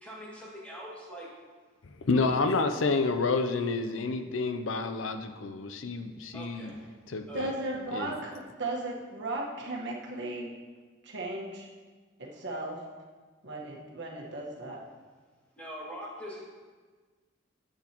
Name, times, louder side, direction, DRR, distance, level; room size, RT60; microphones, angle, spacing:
voice 1, 0.0-1.3 2.1-2.2 6.3-6.8 7.3-7.4 7.9-8.0 15.6-16.4, equal, 5° left, -6 dB, 2.1 m, -43 dB
voice 2, 1.8-6.8 7.1-7.5 7.9-8.2, left 3 dB, 90° left, 8 dB, 0.6 m, -29 dB
voice 3, 7.3-10.5 11.0-11.7 12.2-12.8 13.4-14.8, right 2 dB, 65° right, -2 dB, 1.4 m, -36 dB
10.5 x 8.1 x 3.0 m, 1.4 s
head